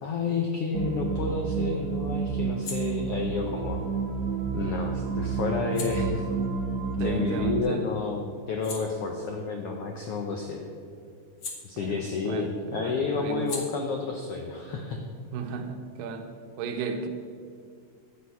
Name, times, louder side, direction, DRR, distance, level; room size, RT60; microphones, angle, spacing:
voice 1, 0.0-3.8 4.5-6.2 7.0-10.7 11.6-15.0, left 4 dB, 85° left, 2 dB, 1.3 m, -30 dB
sound 1, 0.7-7.6, right 5 dB, 60° right, 2.0 m, -30 dB
sound 2, 2.4-7.7 8.1-12.4 12.6-16.0, left 4 dB, 50° left, 2.0 m, -46 dB
voice 2, 7.0-7.8 11.8-12.0 12.3-12.5 12.7-13.5 15.3-16.2 16.6-17.1, right 5 dB, 85° right, 6 dB, 2.5 m, -34 dB
12.0 x 8.5 x 5.7 m, 2.3 s
omnidirectional pair, 3.8 m